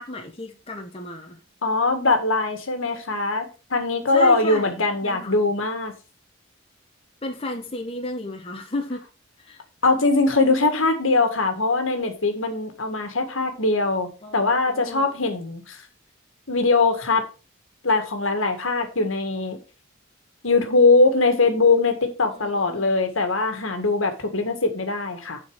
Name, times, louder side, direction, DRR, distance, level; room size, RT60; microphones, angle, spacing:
voice 1, 0.0-1.4 4.1-5.4 7.2-9.0 9.4-9.6 14.2-14.4 14.7-15.1 22.3-22.9, left 1 dB, 25° left, 1.1 m, -33 dB
voice 2, 1.6-5.9 9.8-15.8 16.5-17.2 17.8-19.6 20.4-25.4, left 3 dB, 70° left, 1.8 m, -21 dB
10.5 x 4.6 x 5.0 m
head